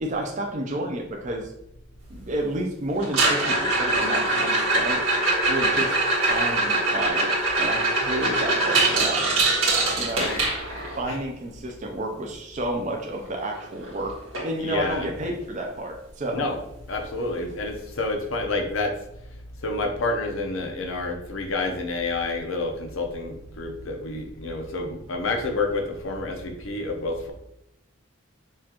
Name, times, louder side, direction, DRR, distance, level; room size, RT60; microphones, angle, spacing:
voice 1, 0.0-1.5 2.1-5.0 5.5-5.9 6.3-9.3 10.0-10.4 11.0-14.2 14.4-16.5 17.4-17.5, right 1 dB, 35° right, 1 dB, 0.5 m, -30 dB
sound 1, 3.0-11.0 13.3-13.4 13.6-13.9 14.3-14.4 15.0-15.1 17.0-17.1, right 2 dB, 90° right, 1.6 m, -23 dB
voice 2, 14.6-15.1 16.3-16.6 16.9-18.9 19.6-27.3, left 2 dB, 80° left, 3 dB, 0.8 m, -29 dB
6.3 x 2.5 x 2.9 m, 0.81 s
head